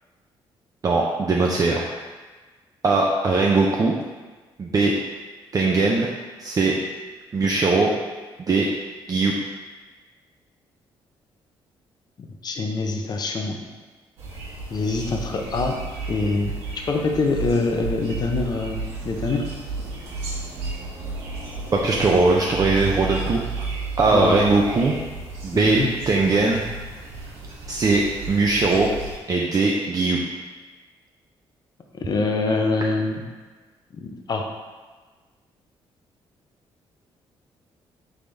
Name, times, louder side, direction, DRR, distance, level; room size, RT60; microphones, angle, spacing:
voice 1, 0.8-1.9 2.8-3.9 4.6-4.9 5.5-6.1 6.4-6.8 7.3-7.9 8.4-8.7 9.1-9.3 21.7-23.7 24.0-25.0 25.4-26.6 27.7-28.9 29.3-30.2, right 3 dB, 35° right, -1 dB, 0.4 m, -20 dB
voice 2, 12.2-13.6 14.7-15.8 16.1-16.5 16.9-18.8 19.0-19.4 24.1-24.4 25.5-25.9 31.9-33.2 34.0-34.4, left 3 dB, 40° left, 2 dB, 0.6 m, -24 dB
sound 1, 14.2-29.2, right 3 dB, 85° right, 1.0 m, -33 dB
3.9 x 3.5 x 3.3 m, 1.4 s
cardioid pair, 80°, 10 cm